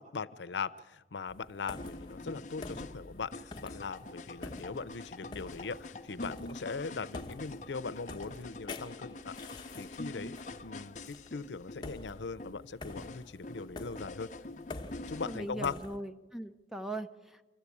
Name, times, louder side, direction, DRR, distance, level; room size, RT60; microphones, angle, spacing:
voice 1, 0.0-9.4 9.8-14.3 15.1-15.8, left 4 dB, 85° left, 13 dB, 0.6 m, -40 dB
sound 1, 1.3-16.0, left 2 dB, 25° left, 1.0 m, -48 dB
sound 2, 1.8-15.4, left 2 dB, 40° left, 0.7 m, -46 dB
voice 2, 15.0-17.5, right 1 dB, ahead, 8 dB, 0.6 m, -41 dB
26.0 x 14.0 x 8.4 m, 1.3 s
head